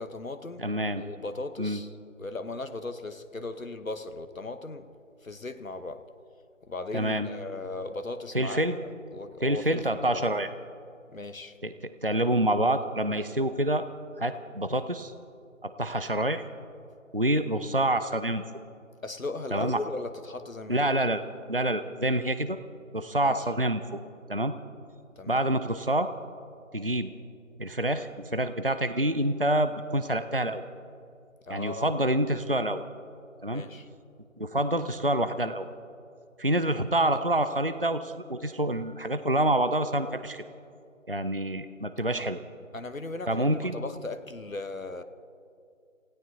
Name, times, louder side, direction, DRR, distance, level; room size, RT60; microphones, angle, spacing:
voice 1, 0.0-0.6 0.9-4.9 5.2-6.1 6.7-10.2 11.1-11.6 19.0-20.9 23.2-23.4 25.2-25.4 31.4-32.1 33.5-33.9 42.1-42.3 42.7-45.0, left 2 dB, 90° left, 9 dB, 1.1 m, -37 dB
voice 2, 0.6-1.0 1.6-1.8 6.9-7.3 8.3-8.8 9.4-10.5 11.6-13.9 14.2-15.1 15.6-16.4 17.1-18.4 19.5-19.8 20.7-22.6 22.9-24.0 24.3-24.5 25.3-26.1 26.7-27.1 27.6-30.6 31.5-32.8 33.4-33.6 34.4-35.7 36.4-40.4 41.1-42.4 43.3-43.8, right 1 dB, 45° right, 11 dB, 0.6 m, -27 dB
29.0 x 17.0 x 2.8 m, 2.5 s
figure-of-eight pair, 175°, 39 cm